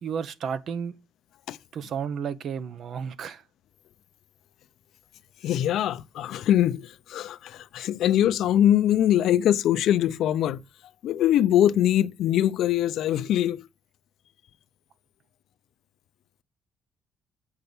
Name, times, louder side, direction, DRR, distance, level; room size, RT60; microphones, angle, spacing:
voice 1, 0.0-0.9 1.7-3.4, right 7 dB, 55° right, 0.9 m, -32 dB
voice 2, 5.4-10.6 11.0-13.7, left 11 dB, 70° left, 0.5 m, -23 dB
8.0 x 5.7 x 7.0 m
cardioid pair, 110°, 0 cm